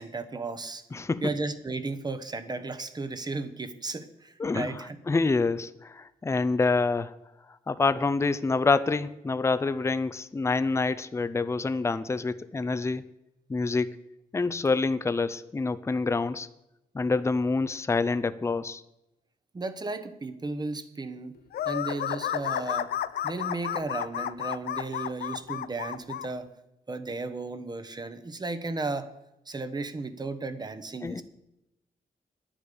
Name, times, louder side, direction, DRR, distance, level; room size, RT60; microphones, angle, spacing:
voice 1, 0.0-0.9 1.2-5.0 19.5-21.4 21.6-22.9 23.2-26.5 26.9-29.1 29.5-31.2, right 3 dB, 25° right, 11 dB, 1.0 m, -34 dB
voice 2, 0.9-1.2 4.4-4.7 5.1-7.1 7.7-13.1 13.5-14.0 14.3-16.5 16.9-18.8 31.0-31.2, left 3 dB, 20° left, 13 dB, 0.5 m, -27 dB
sound 1, 21.5-26.3, left 11 dB, 85° left, 0.4 m, -32 dB
10.0 x 9.6 x 6.8 m, 0.88 s
wide cardioid pair, 130°, 16 cm